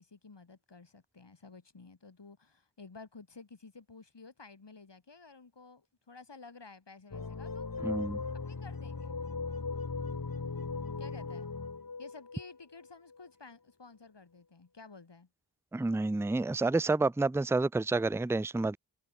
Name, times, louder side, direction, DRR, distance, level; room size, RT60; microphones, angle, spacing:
voice 1, 0.0-7.7 8.3-9.2 11.0-11.5 12.0-15.3, left 4 dB, 70° left, 5.8 m, -53 dB
sound 1, 7.1-13.3, left 4 dB, 50° left, 2.2 m, -38 dB
voice 2, 7.8-8.2 15.7-18.8, right 3 dB, 5° right, 0.5 m, -29 dB
wide cardioid pair, 50°, 44 cm